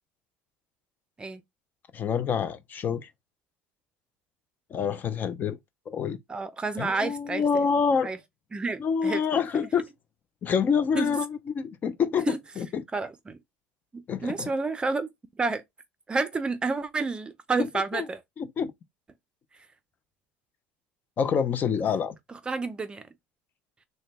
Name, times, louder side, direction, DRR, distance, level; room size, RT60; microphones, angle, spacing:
voice 1, 1.9-3.1 4.7-5.6 5.9-6.2 6.8-8.1 8.8-9.9 10.4-12.8 14.1-14.5 17.9-18.1 18.4-18.7 21.2-22.2, left 6 dB, 35° left, 0.5 m, -27 dB
voice 2, 6.3-7.4 8.0-8.2 8.5-9.2 10.9-11.1 12.3-12.4 12.9-13.4 13.9-15.1 15.4-15.6 16.1-18.2 22.5-23.0, right 3 dB, 20° right, 0.5 m, -29 dB
3.8 x 2.2 x 3.3 m
supercardioid pair, 110°, 5 cm